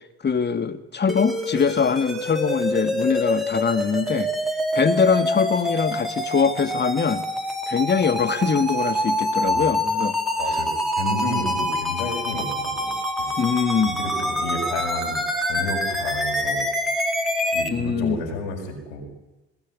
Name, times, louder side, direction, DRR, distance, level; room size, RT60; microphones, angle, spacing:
voice 1, 0.2-4.3 4.7-7.2 7.7-10.2 13.4-14.0 17.7-18.2, left 6 dB, 35° left, 10 dB, 2.1 m, -22 dB
sound 1, 1.1-17.7, equal, ahead, 4.2 m, -26 dB
voice 2, 10.4-10.7 10.9-13.3 13.8-15.1 15.4-16.7 17.5-19.1, left 2 dB, 80° left, -2 dB, 6.1 m, -31 dB
21.0 x 20.5 x 9.7 m, 1.1 s
hypercardioid pair, 50°, 31 cm